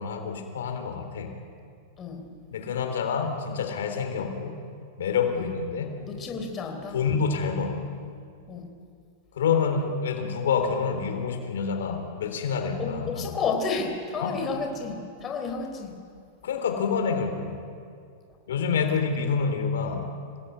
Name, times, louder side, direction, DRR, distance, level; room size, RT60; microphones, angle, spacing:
voice 1, 0.0-1.3 2.5-4.6 5.0-6.0 6.9-7.9 9.3-13.4 14.2-14.4 16.4-17.6 18.5-20.0, left 6 dB, 85° left, 6 dB, 3.4 m, -27 dB
voice 2, 6.0-7.0 8.5-8.7 12.8-15.9, left 4 dB, 25° left, 4 dB, 3.7 m, -31 dB
26.5 x 18.0 x 9.4 m, 2.3 s
supercardioid pair, 135°, 0 cm